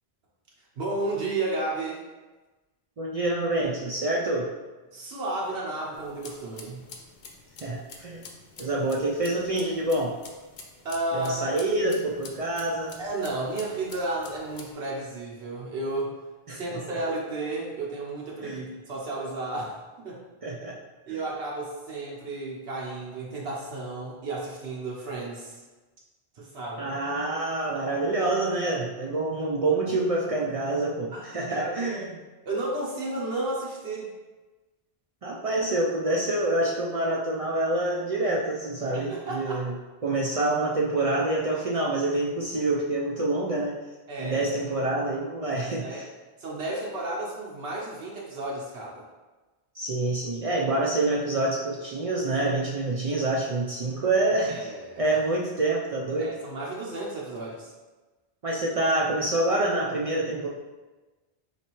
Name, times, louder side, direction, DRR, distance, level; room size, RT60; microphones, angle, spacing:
voice 1, 0.8-2.0 4.9-6.8 10.8-11.6 13.0-16.2 16.5-20.2 21.1-25.6 26.4-27.0 31.1-32.0 32.4-34.1 38.9-39.6 44.1-44.5 45.8-46.0 46.4-49.0 54.5-55.2 56.2-57.7, right 2 dB, 85° right, -4 dB, 1.0 m, -33 dB
voice 2, 3.0-4.5 7.6-8.2 8.6-10.2 11.1-13.0 16.5-16.8 18.4-18.6 20.4-20.8 21.1-21.2 26.8-32.1 35.2-39.7 40.0-43.8 44.2-46.0 49.8-54.7 55.0-56.3 58.4-60.5, right 2 dB, 55° right, -3 dB, 0.4 m, -27 dB
sound 1, 5.9-14.7, left 4 dB, 70° left, 0.8 m, -47 dB
4.3 x 3.2 x 3.0 m, 1.2 s
omnidirectional pair, 1.0 m